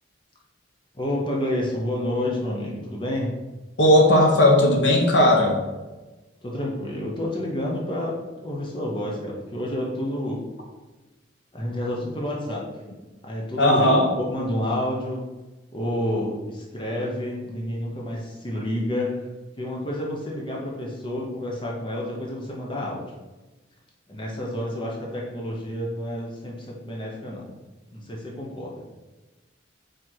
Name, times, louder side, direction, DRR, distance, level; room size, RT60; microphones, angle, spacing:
voice 1, 0.9-3.3 6.4-10.4 11.5-12.7 13.2-15.2 15.7-19.1 19.6-23.0 24.1-27.5 27.9-28.8, left 1 dB, 25° left, -3 dB, 1.0 m, -29 dB
voice 2, 3.8-5.6 13.6-14.1, left 1 dB, 65° left, 1 dB, 1.1 m, -17 dB
4.7 x 4.6 x 4.6 m, 1.1 s
head